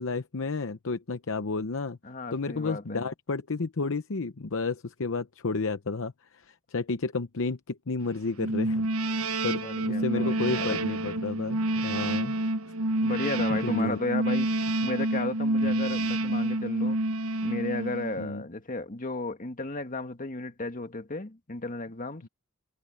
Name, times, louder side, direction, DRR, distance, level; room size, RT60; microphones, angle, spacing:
voice 1, 0.0-2.0 2.3-12.4 13.5-14.0 15.6-15.7 18.2-18.4 22.2-22.3, left 3 dB, 60° left, 0.8 m, -32 dB
voice 2, 2.0-3.1 9.6-10.8 13.0-14.5 14.8-17.0 17.4-22.2, left 2 dB, 35° left, 2.0 m, -34 dB
sound 1, 8.4-18.3, right 1 dB, 70° right, 1.0 m, -28 dB
head